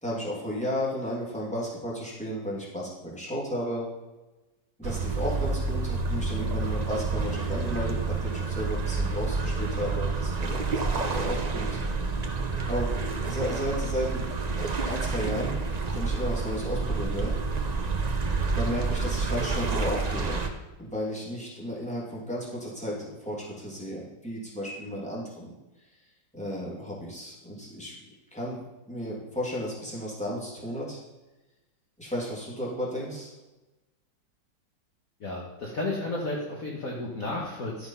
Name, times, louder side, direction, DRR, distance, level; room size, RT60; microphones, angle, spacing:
voice 1, 0.0-3.9 4.8-11.8 12.7-12.9 13.2-14.2 14.6-15.6 15.9-17.3 18.5-20.5 20.8-25.5 26.3-28.0 28.3-31.0 32.0-33.3, equal, 5° left, -6 dB, 2.6 m, -33 dB
sound 1, 4.8-20.5, right 4 dB, 75° right, 0.3 m, -29 dB
voice 2, 35.2-37.9, left 2 dB, 50° left, -3 dB, 1.7 m, -32 dB
11.5 x 6.1 x 5.6 m, 1.1 s
omnidirectional pair, 2.1 m